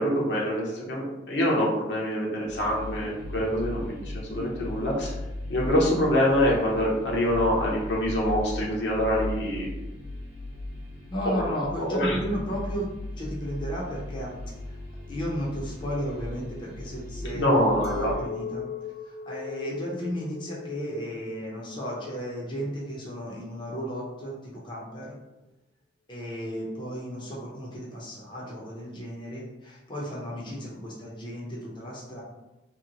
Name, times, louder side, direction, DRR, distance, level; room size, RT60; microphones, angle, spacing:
voice 1, 0.0-5.1 5.5-9.7 11.8-12.2 17.3-18.1, equal, 65° left, -3 dB, 0.8 m, -25 dB
sound 1, 2.5-18.2, left 1 dB, 60° right, 1.0 m, -37 dB
voice 2, 11.1-12.9 13.2-14.3 14.7-14.8 15.1-18.7 19.0-25.1 26.1-32.2, equal, 25° left, -5 dB, 0.6 m, -34 dB
Chink clink, 17.8-23.3, left 6 dB, 40° right, 0.5 m, -40 dB
2.9 x 2.1 x 3.8 m, 1.0 s
head